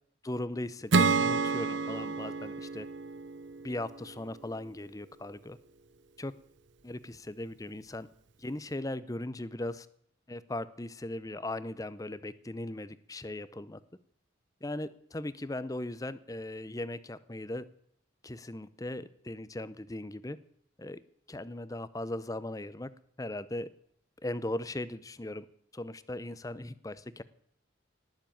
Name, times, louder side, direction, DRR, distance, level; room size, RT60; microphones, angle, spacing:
voice 1, 0.2-2.9 3.6-5.6 6.2-6.3 6.8-8.1 8.4-9.9 10.3-13.8 14.6-17.6 18.2-20.4 20.8-21.0 21.3-22.9 23.2-23.7 24.2-25.5 25.7-27.2, left 1 dB, 15° left, 16 dB, 0.6 m, -38 dB
Acoustic guitar / Strum, 0.9-4.4, right 4 dB, 65° right, 0.7 m, -29 dB
18.5 x 7.4 x 9.1 m, 0.70 s
head